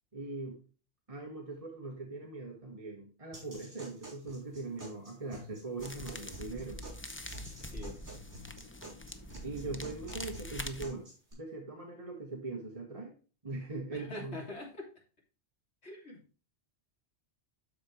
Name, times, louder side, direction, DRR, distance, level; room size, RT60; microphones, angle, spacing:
voice 1, 0.1-0.6 1.1-6.8 9.4-11.1 11.4-13.1 13.4-14.4, right 3 dB, 30° right, -1 dB, 1.7 m, -41 dB
sound 1, 3.3-11.3, right 1 dB, 75° right, 5.1 m, -50 dB
sound 2, 5.8-10.9, left 1 dB, 15° left, 0.5 m, -44 dB
voice 2, 7.6-8.0 13.9-14.9 15.8-16.2, left 2 dB, 70° left, -2 dB, 3.1 m, -44 dB
13.0 x 4.3 x 3.3 m, 0.36 s
omnidirectional pair, 1.2 m